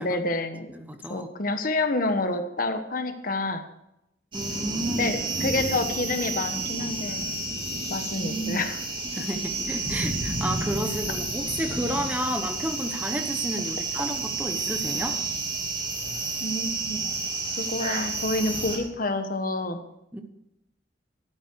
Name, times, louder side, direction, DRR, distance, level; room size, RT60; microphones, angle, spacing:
voice 1, 0.0-0.7 1.1-3.6 5.0-7.3 7.9-8.8 9.2-9.3 16.4-17.0 17.6-19.8, left 2 dB, 50° left, 7 dB, 1.3 m, -28 dB
voice 2, 0.7-1.3 4.3-5.1 8.2-8.6 9.1-15.2 20.1-20.2, right 1 dB, 10° right, 6 dB, 1.1 m, -31 dB
sound 1, 4.3-18.8, right 3 dB, 30° right, 3.9 m, -30 dB
14.5 x 12.0 x 4.7 m, 0.85 s
head